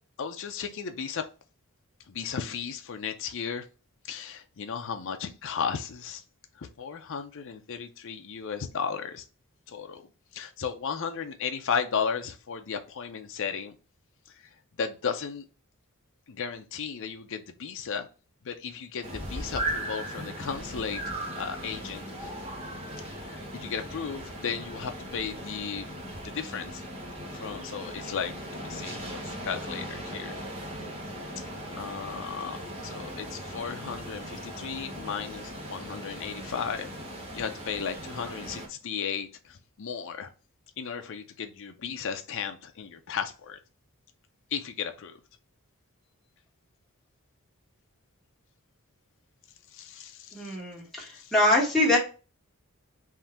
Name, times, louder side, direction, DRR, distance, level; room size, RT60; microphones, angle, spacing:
voice 1, 0.2-1.2 2.1-3.6 4.0-6.2 6.6-9.2 9.7-10.0 10.3-13.7 14.3-14.4 14.8-15.4 16.3-18.1 18.4-22.3 23.0-25.9 26.2-26.8 27.3-30.4 31.4-31.5 31.7-36.9 37.3-40.3 40.8-43.6 44.5-45.2 49.7-50.6 51.0-51.3, left 6 dB, 60° left, 0.5 m, -35 dB
sound 1, 19.0-38.7, right 1 dB, 25° right, 1.1 m, -38 dB
voice 2, 50.3-52.0, left 1 dB, ahead, 1.6 m, -24 dB
3.7 x 2.6 x 4.3 m
head